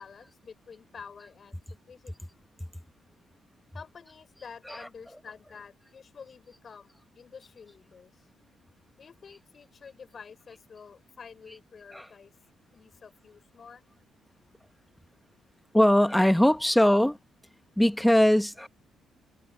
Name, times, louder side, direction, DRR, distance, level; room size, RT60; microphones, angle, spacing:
voice 1, 0.0-2.1 3.7-6.9 7.2-8.1 9.0-12.3 12.7-13.8 16.4-16.6, left 6 dB, 45° left, 6.3 m, -49 dB
voice 2, 15.7-17.2 17.8-18.7, equal, 5° left, 1.2 m, -21 dB
cardioid pair, 90°, 0 cm